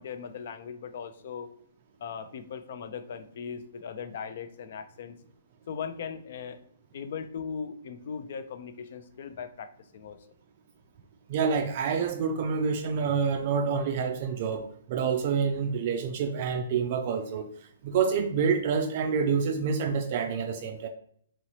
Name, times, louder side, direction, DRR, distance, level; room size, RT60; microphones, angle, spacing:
voice 1, 0.0-1.5 2.0-5.2 5.7-6.6 6.9-10.2, left 6 dB, 60° left, 9 dB, 0.4 m, -39 dB
voice 2, 11.3-17.5 17.8-20.9, right 6 dB, 45° right, 5 dB, 0.3 m, -27 dB
3.0 x 2.7 x 2.9 m, 0.65 s
hypercardioid pair, 135°, 0 cm